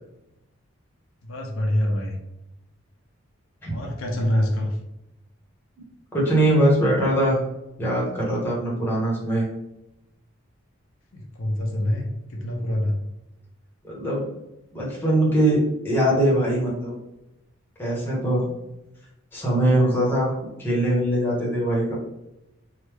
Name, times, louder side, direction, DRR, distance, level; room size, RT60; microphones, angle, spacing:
voice 1, 1.2-2.2 3.7-4.8 11.1-13.0, left 1 dB, 70° left, 1 dB, 0.5 m, -25 dB
voice 2, 6.1-7.4 7.8-9.5 13.8-14.3 14.7-17.0 17.8-18.4 19.3-20.3 20.6-21.9, right 1 dB, 10° left, -5 dB, 0.8 m, -22 dB
3.2 x 2.1 x 3.3 m, 0.91 s
head